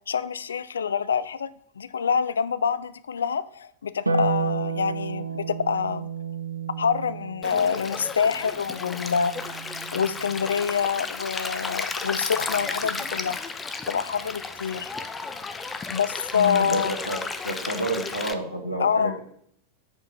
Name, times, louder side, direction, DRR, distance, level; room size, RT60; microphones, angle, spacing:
voice 1, 0.1-1.5 1.8-6.1 6.8-9.6 9.9-13.4 13.9-14.9 15.9-16.9 18.8-19.2, left 6 dB, 70° left, 16 dB, 0.3 m, -26 dB
Harp, 4.0-10.6 12.2-13.2, right 5 dB, 80° right, 0.5 m, -32 dB
Stream, 7.4-18.3, left 4 dB, 15° left, 0.5 m, -33 dB
voice 2, 16.3-19.2, right 1 dB, 85° left, 1 dB, 1.3 m, -30 dB
5.3 x 4.7 x 5.3 m, 0.68 s
figure-of-eight pair, 90°, 0 cm